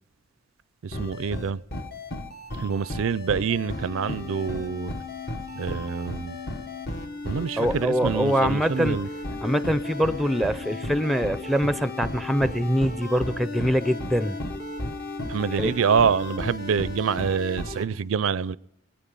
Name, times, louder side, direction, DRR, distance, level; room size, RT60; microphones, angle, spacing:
voice 1, 0.8-1.6 2.6-4.9 5.6-6.4 7.2-9.1 15.3-18.6, right 6 dB, 75° right, 0.4 m, -26 dB
sound 1, 0.9-17.9, left 2 dB, 50° left, 1.3 m, -34 dB
voice 2, 7.6-9.0 9.4-14.4 15.5-15.8, equal, ahead, 0.5 m, -24 dB
23.5 x 9.6 x 5.4 m
head